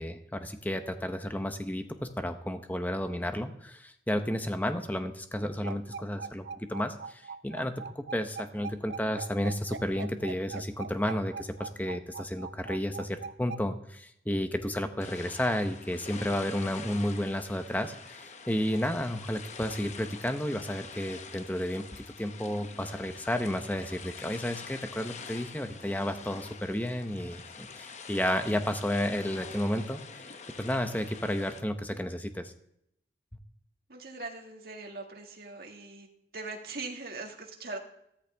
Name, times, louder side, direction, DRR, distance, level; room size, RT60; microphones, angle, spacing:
voice 1, 0.0-30.3 30.6-32.5, left 1 dB, 10° left, 7 dB, 0.8 m, -32 dB
sound 1, 5.4-13.6, right 5 dB, 80° right, 0.5 m, -41 dB
sound 2, 15.0-31.6, left 5 dB, 40° left, 0.8 m, -46 dB
voice 2, 33.9-36.1 36.3-37.8, right 3 dB, 60° right, 1 dB, 1.9 m, -41 dB
13.5 x 13.5 x 3.5 m, 0.75 s
head